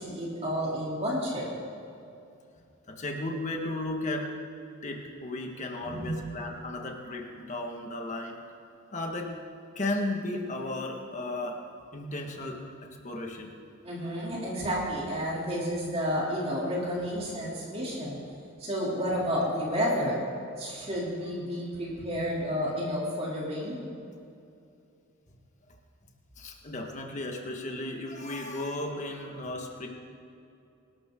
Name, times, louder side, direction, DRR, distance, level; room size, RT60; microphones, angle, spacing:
voice 1, 0.0-1.5 5.8-6.2 13.8-18.2 18.6-20.2 20.5-23.8, equal, 30° right, -5 dB, 3.1 m, -31 dB
voice 2, 2.9-4.3 4.8-8.4 8.9-9.3 9.8-11.6 11.9-12.6 13.0-13.5 20.8-20.9 26.4-29.9, left 2 dB, 35° left, 1 dB, 1.8 m, -34 dB
24.5 x 12.5 x 3.8 m, 2.5 s
head